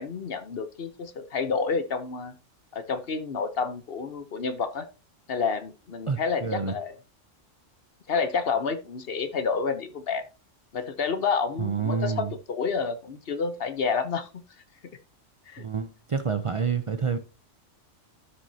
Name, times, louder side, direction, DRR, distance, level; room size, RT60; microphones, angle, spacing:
voice 1, 0.0-2.3 2.7-4.9 5.3-6.9 8.1-10.2 10.7-14.3 15.5-15.7, left 5 dB, 55° left, 1.0 m, -29 dB
voice 2, 6.1-6.7 11.6-12.3 15.6-17.2, right 6 dB, 50° right, 0.3 m, -28 dB
12.5 x 6.2 x 2.8 m
omnidirectional pair, 1.3 m